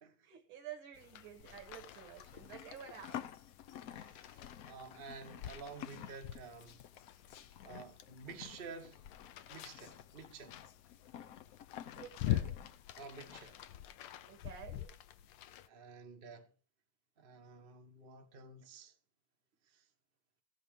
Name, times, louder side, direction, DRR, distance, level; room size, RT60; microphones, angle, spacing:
voice 1, 0.2-3.2 11.9-12.6 14.3-14.9, right 9 dB, 70° right, 2.2 m, -51 dB
sound 1, 0.9-15.7, left 13 dB, 90° left, 1.6 m, -45 dB
Livestock farm animals working animals, 1.4-13.9, left 10 dB, 70° left, 0.8 m, -51 dB
voice 2, 3.9-6.8 7.6-9.1 9.5-10.6 13.0-13.6 15.7-16.5 17.2-18.9 19.7-19.8, right 4 dB, 35° right, 0.9 m, -51 dB
16.0 x 5.5 x 5.1 m
omnidirectional pair, 2.3 m